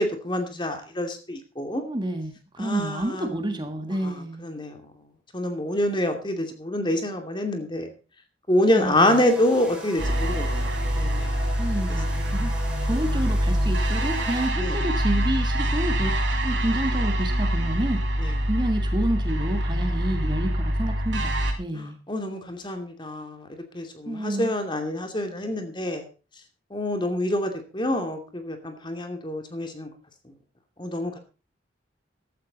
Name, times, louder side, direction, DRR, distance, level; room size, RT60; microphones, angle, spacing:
voice 1, 0.0-1.8 2.6-3.3 4.0-4.8 5.3-7.9 8.5-10.6 10.9-11.5 14.6-14.8 18.2-18.4 21.7-26.0 26.7-29.9 30.8-31.2, left 1 dB, 25° left, 6 dB, 2.6 m, -27 dB
voice 2, 1.7-4.5 8.7-9.2 11.6-12.5 12.8-18.0 18.5-22.0 24.1-24.5, right 1 dB, 25° right, 7 dB, 1.6 m, -29 dB
sound 1, 9.0-14.5, right 1 dB, 5° right, 4.6 m, -40 dB
sound 2, 10.0-21.5, equal, 70° right, 4.1 m, -25 dB
15.5 x 12.0 x 4.1 m, 0.33 s
head